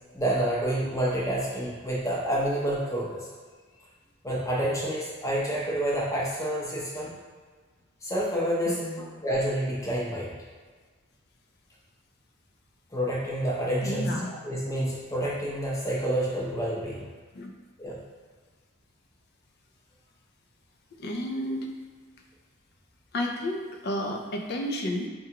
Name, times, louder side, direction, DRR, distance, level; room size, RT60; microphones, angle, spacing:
voice 1, 0.1-3.3 4.2-7.1 8.0-10.3 12.9-17.0 17.8-18.0, right 1 dB, 15° left, -5 dB, 0.6 m, -28 dB
voice 2, 8.7-9.0 13.8-14.3 17.3-17.5 21.0-21.7 23.1-25.1, left 1 dB, 50° left, 2 dB, 0.4 m, -31 dB
4.7 x 2.3 x 2.8 m, 1.4 s
head